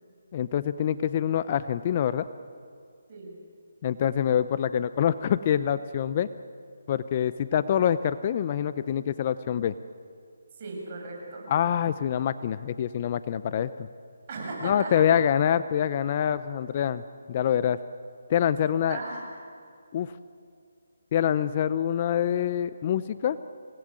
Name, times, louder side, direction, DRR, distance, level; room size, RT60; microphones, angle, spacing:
voice 1, 0.3-2.3 3.8-6.3 6.9-9.7 11.5-13.9 14.6-17.0 17.3-17.8 18.3-19.0 19.9-20.1 21.1-23.4, left 9 dB, 35° left, 14 dB, 0.7 m, -25 dB
voice 2, 10.6-11.4 14.3-15.1 18.9-19.2, right 3 dB, 35° right, -1 dB, 8.0 m, -36 dB
27.5 x 19.0 x 9.1 m, 2.3 s
figure-of-eight pair, 160°, 0 cm